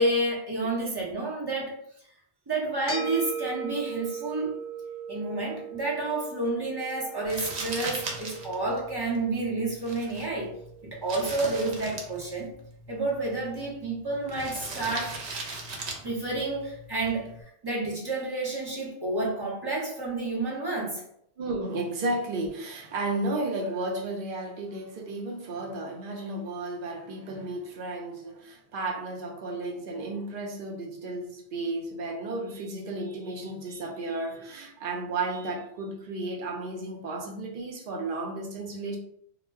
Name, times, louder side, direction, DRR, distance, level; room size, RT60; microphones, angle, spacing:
voice 1, 0.0-1.8 2.5-4.5 5.1-10.5 10.9-12.5 12.9-15.2 16.0-21.0, right 2 dB, 25° right, -4 dB, 0.7 m, -30 dB
sound 1, 2.9-11.5, right 5 dB, 15° left, 0.8 m, -39 dB
Crumpling crinkling, 7.2-17.4, right 3 dB, 85° right, 0.9 m, -40 dB
voice 2, 21.4-39.0, right 2 dB, 60° right, 0 dB, 0.7 m, -33 dB
2.2 x 2.0 x 3.3 m, 0.69 s
omnidirectional pair, 1.1 m